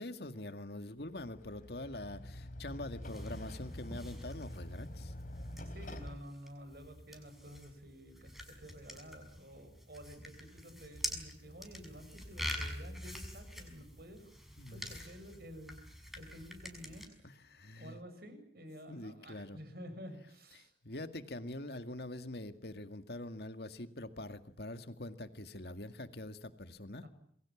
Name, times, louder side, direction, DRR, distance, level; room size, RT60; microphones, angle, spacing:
voice 1, 0.0-5.1 14.6-15.0 17.2-18.0 18.9-19.6 20.6-27.1, left 1 dB, 65° left, 9 dB, 2.1 m, -44 dB
sound 1, 1.0-6.2, left 1 dB, 50° left, 3.3 m, -46 dB
sound 2, 3.0-17.1, equal, ahead, 5.9 m, -46 dB
voice 2, 5.5-14.3 14.7-15.8 16.2-17.1 17.8-20.7 27.0-27.1, equal, 60° right, 9 dB, 7.1 m, -51 dB
27.5 x 22.5 x 7.3 m, 0.67 s
head